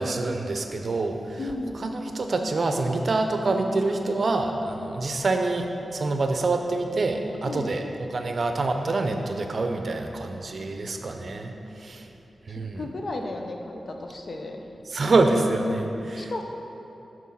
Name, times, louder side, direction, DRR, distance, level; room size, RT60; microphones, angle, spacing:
voice 1, 0.0-1.4 1.7-5.7 5.9-7.8 8.1-12.1 12.5-12.9 14.9-16.4, right 2 dB, 60° right, 5 dB, 0.6 m, -26 dB
voice 2, 1.4-1.8 7.4-7.7 12.5-14.7 16.2-16.4, left 2 dB, 50° left, 3 dB, 0.7 m, -34 dB
6.1 x 4.7 x 5.6 m, 2.9 s
wide cardioid pair, 75°, 0 cm